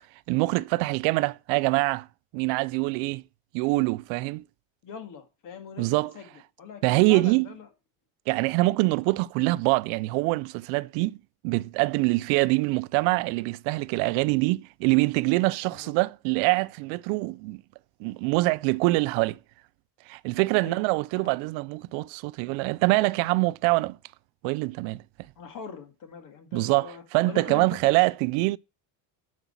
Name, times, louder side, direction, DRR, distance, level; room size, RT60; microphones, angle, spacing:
voice 1, 0.3-2.1 2.3-3.2 3.5-4.4 5.8-6.1 6.8-7.5 8.3-11.2 11.4-17.6 18.0-19.4 20.1-24.0 24.4-25.0 26.5-28.6, right 23 dB, 75° right, 0.5 m, -24 dB
voice 2, 4.8-6.3 6.6-7.7 14.1-14.2 15.7-15.9 20.6-20.8 21.1-21.4 25.4-28.0, left 7 dB, 45° left, 1.9 m, -42 dB
8.0 x 5.3 x 5.8 m
cardioid pair, 165°, 47 cm